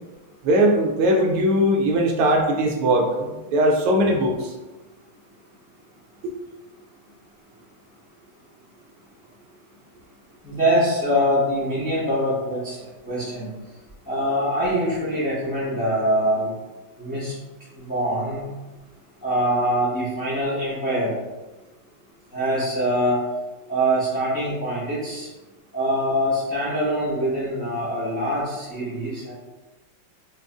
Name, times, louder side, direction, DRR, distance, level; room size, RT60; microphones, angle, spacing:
voice 1, 0.4-4.5 6.2-6.3, right 1 dB, 85° right, 2 dB, 1.5 m, -20 dB
voice 2, 10.4-12.8 13.0-13.5 14.1-16.5 17.0-17.3 17.8-18.5 19.2-21.1 22.3-23.2 23.7-25.3 25.7-29.3, equal, 15° left, -10 dB, 0.6 m, -24 dB
4.9 x 2.3 x 2.4 m, 1.1 s
omnidirectional pair, 2.4 m